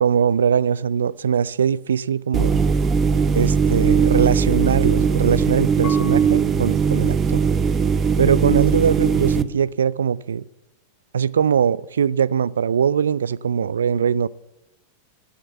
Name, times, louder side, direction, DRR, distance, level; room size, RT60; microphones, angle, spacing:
voice 1, 0.0-2.6 3.3-7.4 8.2-10.4 11.1-14.3, right 7 dB, 65° right, 0.3 m, -21 dB
sound 1, 2.3-9.4, right 6 dB, 25° right, 0.6 m, -19 dB
Marimba xylophone / Wood, 5.8-8.7, left 2 dB, 30° left, 2.7 m, -38 dB
15.5 x 6.5 x 8.0 m
figure-of-eight pair, 90°, 0 cm